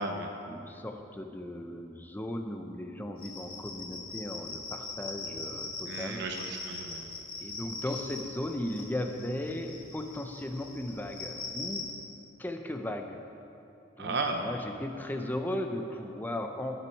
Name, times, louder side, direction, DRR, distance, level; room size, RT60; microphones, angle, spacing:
voice 1, 0.5-6.2 7.4-12.1 12.4-13.2 14.0-16.8, left 1 dB, 10° left, 4 dB, 0.6 m, -36 dB
sound 1, 3.2-11.9, left 3 dB, 25° left, 1.9 m, -41 dB
voice 2, 5.9-7.1 14.0-14.6, right 3 dB, 60° right, 4 dB, 0.7 m, -34 dB
18.0 x 6.1 x 4.6 m, 2.7 s
head